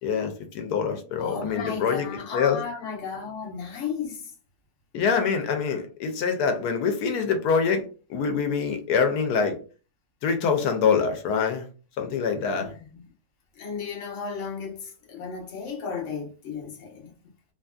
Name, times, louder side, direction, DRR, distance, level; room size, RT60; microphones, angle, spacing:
voice 1, 0.0-2.1 2.3-2.6 4.9-9.6 10.2-11.7 12.0-12.7, left 6 dB, 85° left, 1.2 m, -25 dB
voice 2, 1.2-4.3 12.3-13.0 13.5-17.1, left 6 dB, 60° left, 1.2 m, -34 dB
2.9 x 2.5 x 2.3 m
omnidirectional pair, 1.6 m